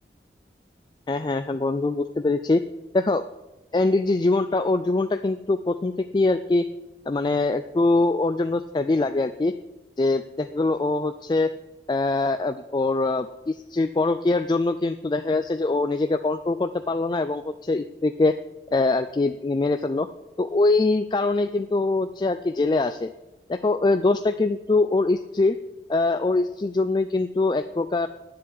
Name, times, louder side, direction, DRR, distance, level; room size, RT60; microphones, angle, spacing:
voice 1, 1.1-2.6 2.9-3.2 3.7-6.7 7.1-9.5 10.0-11.5 11.9-18.4 18.7-20.1 20.4-23.1 23.5-25.6 25.9-28.1, left 3 dB, 25° left, 9 dB, 0.3 m, -23 dB
10.0 x 7.6 x 8.6 m, 1.0 s
head